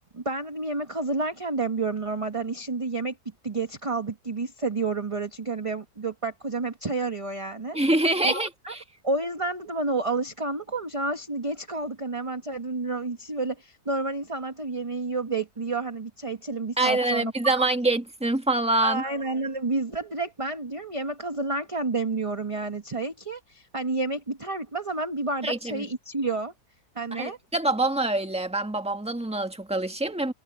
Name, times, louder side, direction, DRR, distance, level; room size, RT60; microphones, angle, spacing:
voice 1, 0.1-3.1 3.4-7.8 8.2-8.7 9.0-17.6 18.8-26.5 26.9-27.4, right 3 dB, 20° right, 1.2 m, -30 dB
voice 2, 7.7-8.8 16.8-19.0 25.4-25.9 27.1-30.3, right 2 dB, 5° right, 1.6 m, -25 dB
omnidirectional pair, 1.6 m